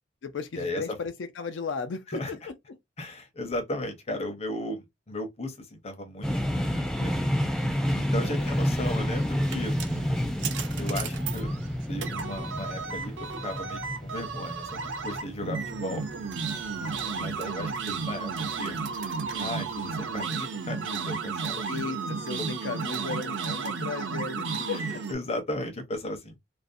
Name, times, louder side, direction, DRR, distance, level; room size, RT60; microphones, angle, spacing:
voice 1, 0.2-2.5 8.2-8.5 16.8-17.2 21.7-25.0, left 4 dB, 85° left, 0.4 m, -36 dB
voice 2, 3.0-7.2 7.9-9.8 10.8-11.5 11.9-13.1 13.4-16.0 17.2-18.3 18.6-18.8 19.4-21.9 24.7-26.4, left 1 dB, 35° left, 0.6 m, -36 dB
sound 1, 6.2-18.0, equal, 5° left, 0.3 m, -30 dB
sound 2, 8.9-25.2, right 5 dB, 75° right, 0.5 m, -33 dB
2.5 x 2.0 x 2.5 m
head